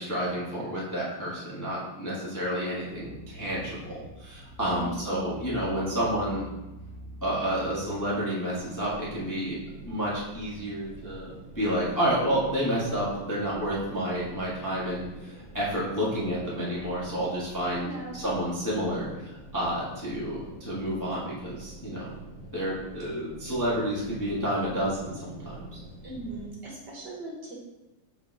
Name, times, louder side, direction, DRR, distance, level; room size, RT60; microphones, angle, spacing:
voice 1, 0.0-6.4 7.2-9.6 9.9-22.1 22.5-25.8, equal, 10° left, -7 dB, 1.1 m, -30 dB
sound 1, 2.9-8.1, right 1 dB, 85° left, 2.2 m, -45 dB
voice 2, 4.7-5.3 17.7-18.2 26.0-27.6, right 2 dB, 55° right, -3 dB, 1.7 m, -39 dB
sound 2, 8.4-26.5, right 2 dB, 35° right, 1.1 m, -47 dB
6.9 x 4.4 x 3.4 m, 1.0 s
omnidirectional pair, 2.4 m